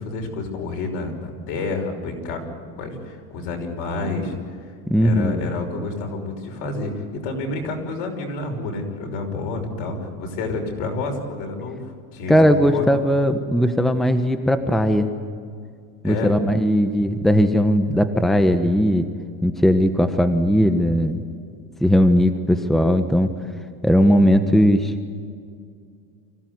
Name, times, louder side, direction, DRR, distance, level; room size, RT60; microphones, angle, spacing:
voice 1, 0.0-4.4 5.0-12.9 16.0-16.3, left 3 dB, 70° left, 4 dB, 5.9 m, -29 dB
voice 2, 4.9-5.4 12.3-15.1 16.0-19.1 19.4-21.2 21.8-23.3 23.8-24.9, equal, ahead, 8 dB, 1.2 m, -18 dB
25.5 x 16.5 x 9.7 m, 2.3 s
supercardioid pair, 110°, 44 cm